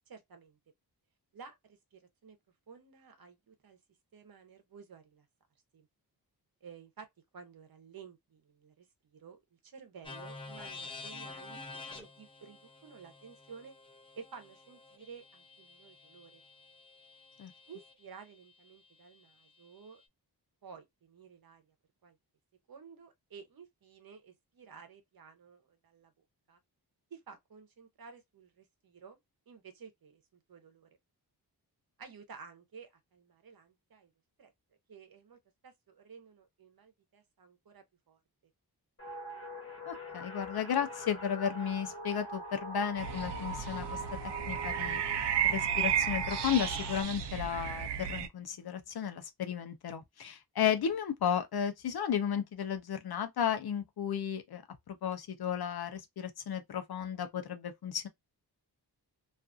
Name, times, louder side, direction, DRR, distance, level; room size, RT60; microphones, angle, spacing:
voice 1, 0.1-0.6 1.3-2.4 2.7-3.8 4.1-5.3 5.7-5.9 6.6-7.1 7.3-8.9 9.1-13.7 14.1-16.4 17.7-20.0 20.6-21.6 22.0-22.2 22.7-26.1 26.5-26.6 27.1-29.2 29.5-30.9 32.0-34.1 34.4-34.5 34.9-38.2, right 6 dB, 60° right, 0.8 m, -53 dB
sound 1, 10.0-17.9, left 3 dB, 15° left, 0.8 m, -49 dB
sound 2, 39.0-47.0, right 2 dB, 35° left, 1.4 m, -42 dB
voice 2, 39.9-44.0 44.5-45.0 45.4-54.6 54.9-58.1, left 8 dB, 70° left, 0.6 m, -34 dB
sound 3, 43.0-48.3, right 9 dB, 90° right, 0.5 m, -33 dB
2.5 x 2.4 x 2.4 m
wide cardioid pair, 120°, 40 cm